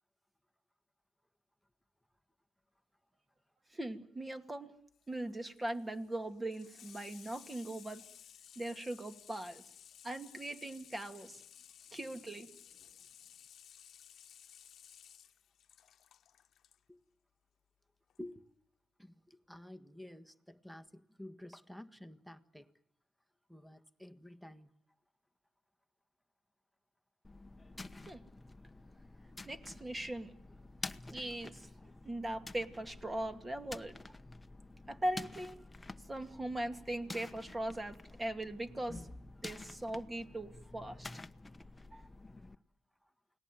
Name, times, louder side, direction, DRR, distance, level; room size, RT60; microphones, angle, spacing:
voice 1, 3.7-4.7 5.1-8.0 8.6-9.6 10.0-11.4 11.9-12.5 28.1-28.2 29.4-30.3 31.1-31.7 32.0-34.2 34.9-35.6 36.1-39.1 39.4-41.1 41.9-42.0, right 1 dB, 20° right, 2.5 m, -40 dB
Water tap faucet / Sink (filling or washing), 4.9-16.8 18.1-18.2, left 9 dB, 70° left, 1.0 m, -57 dB
voice 2, 19.0-22.7 23.5-24.7 42.3-42.5 43.0-43.1, left 1 dB, ahead, 1.6 m, -51 dB
sound 1, 27.2-42.5, left 2 dB, 15° left, 1.1 m, -50 dB
29.0 x 19.0 x 9.4 m
cardioid pair, 70°, 0 cm